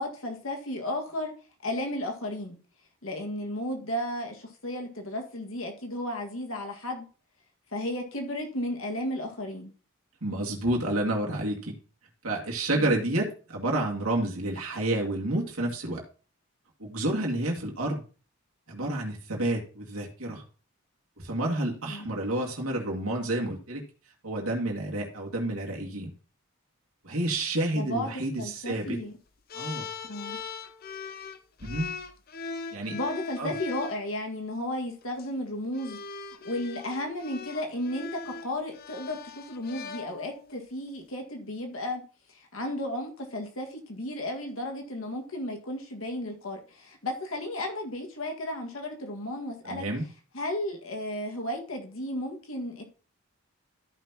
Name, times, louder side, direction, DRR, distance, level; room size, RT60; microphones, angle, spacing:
voice 1, 0.0-1.3 1.6-2.6 3.0-7.0 7.7-9.7 12.7-13.0 21.8-22.1 27.7-29.1 30.0-30.4 32.9-36.0 36.4-42.0 42.3-49.8 50.3-52.8, left 1 dB, 75° left, 2 dB, 1.8 m, -34 dB
voice 2, 10.2-11.7 12.2-16.0 16.8-18.0 18.7-20.4 21.2-23.8 24.2-26.1 27.0-29.0 29.5-29.9 31.6-32.0 32.7-33.0 33.4-33.5 49.6-50.0, right 1 dB, 90° right, -1 dB, 2.1 m, -29 dB
sound 1, 29.5-34.0 35.0-35.2 35.7-40.6, left 4 dB, 45° left, 0.6 m, -40 dB
13.5 x 5.9 x 2.9 m, 0.38 s
head